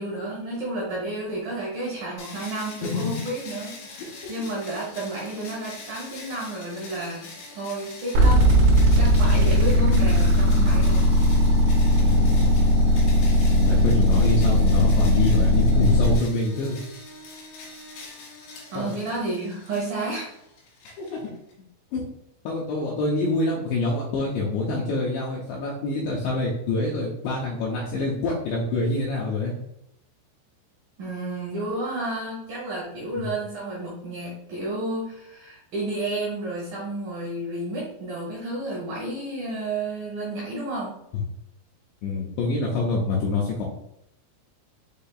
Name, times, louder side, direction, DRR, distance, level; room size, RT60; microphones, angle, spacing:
voice 1, 0.0-8.5 9.0-11.1 18.7-20.3 31.0-40.9, right 2 dB, 90° right, -5 dB, 1.9 m, -31 dB
sound 1, 2.2-21.5, left 3 dB, 70° left, 4.0 m, -43 dB
voice 2, 2.8-3.2 4.0-4.3 11.9-12.6 13.5-16.8 18.8-19.0 21.0-21.3 21.9-22.0 22.4-29.5 33.2-33.3 42.0-43.6, left 3 dB, 85° left, -3 dB, 2.5 m, -26 dB
sound 2, 8.1-16.2, equal, 70° right, 3.1 m, -18 dB
8.1 x 2.7 x 2.3 m, 0.79 s
omnidirectional pair, 5.8 m